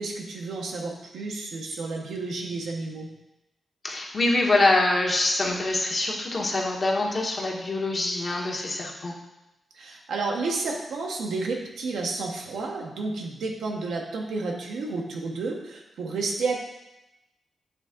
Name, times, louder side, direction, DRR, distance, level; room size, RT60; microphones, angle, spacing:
voice 1, 0.0-3.1 9.7-16.7, right 3 dB, 85° right, 0 dB, 0.9 m, -31 dB
voice 2, 3.8-9.1, left 2 dB, 50° left, -2 dB, 1.3 m, -24 dB
8.0 x 3.4 x 3.7 m, 0.95 s
cardioid pair, 55°, 0 cm